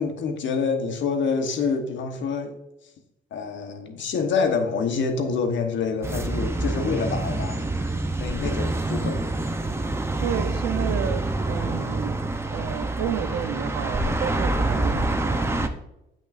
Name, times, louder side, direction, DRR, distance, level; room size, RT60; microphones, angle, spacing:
voice 1, 0.0-2.5 3.3-7.6 8.2-9.2, left 5 dB, 70° left, 5 dB, 1.1 m, -26 dB
sound 1, 6.0-15.7, right 2 dB, 15° right, 0.6 m, -26 dB
voice 2, 10.2-12.2 12.5-15.5, right 9 dB, 85° right, 9 dB, 0.6 m, -31 dB
8.3 x 6.1 x 2.5 m, 0.88 s
cardioid pair, 90°, 20 cm